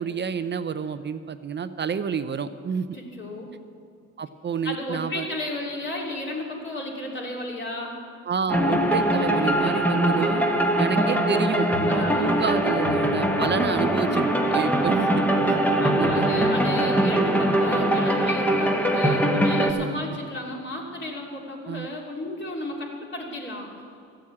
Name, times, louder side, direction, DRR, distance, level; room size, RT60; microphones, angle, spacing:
voice 1, 0.0-3.0 4.2-5.3 8.3-10.4 10.8-15.6 16.0-16.5 17.0-17.2 21.7-21.9, right 6 dB, 35° right, 11 dB, 0.5 m, -29 dB
voice 2, 2.9-3.5 4.6-7.9 10.8-11.2 11.9-12.4 15.8-23.9, left 1 dB, 40° left, -2 dB, 3.1 m, -33 dB
sound 1, 8.5-19.7, right 1 dB, 5° left, 1.2 m, -22 dB
14.0 x 7.5 x 8.5 m, 2.4 s
cardioid pair, 90°, 30 cm